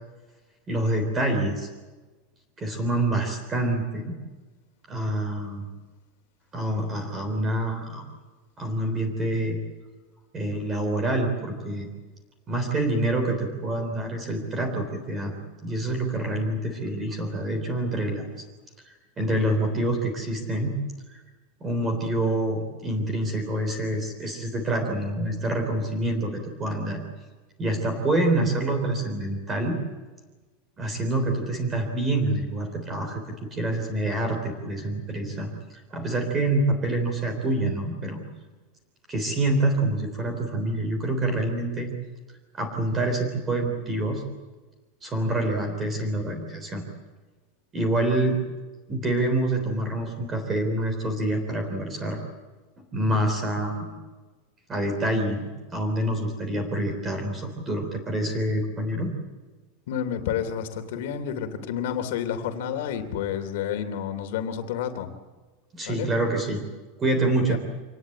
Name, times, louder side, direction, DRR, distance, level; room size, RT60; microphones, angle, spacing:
voice 1, 0.7-1.7 2.6-4.2 4.9-5.7 6.5-8.0 8.6-9.6 10.3-11.9 12.5-15.4 15.6-18.2 18.8-20.7 21.1-21.2 21.6-27.0 27.6-29.8 30.8-33.2 33.5-35.5 35.9-38.2 39.1-41.9 42.5-44.2 45.0-46.8 47.7-48.4 48.9-52.2 52.8-53.9 54.7-59.1 65.7-66.6 67.0-67.6, right 1 dB, 15° right, 5 dB, 3.6 m, -26 dB
voice 2, 59.9-65.1 65.8-66.1 67.5-67.6, left 9 dB, 60° left, 6 dB, 3.0 m, -30 dB
26.5 x 19.5 x 8.6 m, 1.3 s
supercardioid pair, 180°, 0 cm